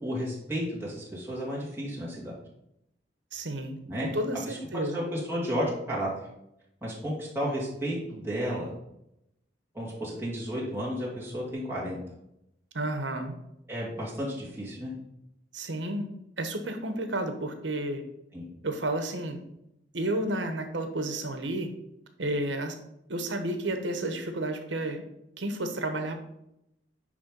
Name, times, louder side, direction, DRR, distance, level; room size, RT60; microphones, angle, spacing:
voice 1, 0.0-2.3 3.9-4.1 4.5-6.1 6.8-8.7 9.7-12.0 13.7-14.9 18.3-18.5, equal, 15° right, -6 dB, 2.5 m, -32 dB
voice 2, 3.3-5.0 12.7-13.3 15.5-16.1 16.4-18.0 18.6-19.4 19.9-21.7 22.2-22.8 23.1-25.0 25.4-26.2, right 1 dB, 80° right, 7 dB, 1.1 m, -31 dB
9.8 x 3.4 x 5.3 m, 0.82 s
head